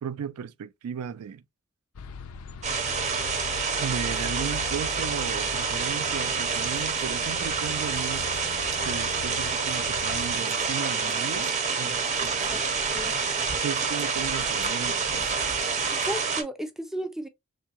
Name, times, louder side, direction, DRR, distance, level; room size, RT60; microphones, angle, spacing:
voice 1, 0.0-1.4 3.8-8.3 8.8-12.6 13.6-15.2, right 7 dB, 85° right, 0.3 m, -35 dB
sound 1, 1.9-10.4, left 5 dB, 70° left, 0.4 m, -41 dB
sound 2, 2.6-16.4, right 5 dB, 30° right, 0.7 m, -28 dB
voice 2, 12.3-12.6 12.9-13.1 15.9-17.3, right 1 dB, ahead, 0.3 m, -34 dB
3.5 x 2.7 x 2.9 m
head